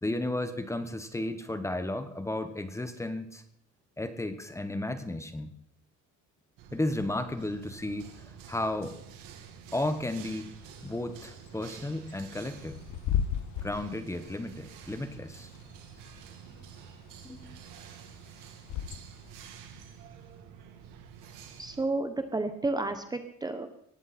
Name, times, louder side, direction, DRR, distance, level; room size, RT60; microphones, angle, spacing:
voice 1, 0.0-3.4 4.0-5.5 6.7-9.0 9.7-10.5 10.8-12.8 13.6-15.5 17.2-17.6, left 1 dB, 10° left, 9 dB, 1.2 m, -33 dB
sound 1, 6.6-21.8, right 7 dB, 85° right, 2.8 m, -49 dB
Bird / Wind, 10.6-19.3, left 9 dB, 65° left, 1.1 m, -37 dB
voice 2, 21.6-23.7, right 2 dB, 10° right, 8 dB, 1.0 m, -31 dB
19.5 x 15.5 x 4.3 m, 0.74 s
cardioid pair, 150°, 32 cm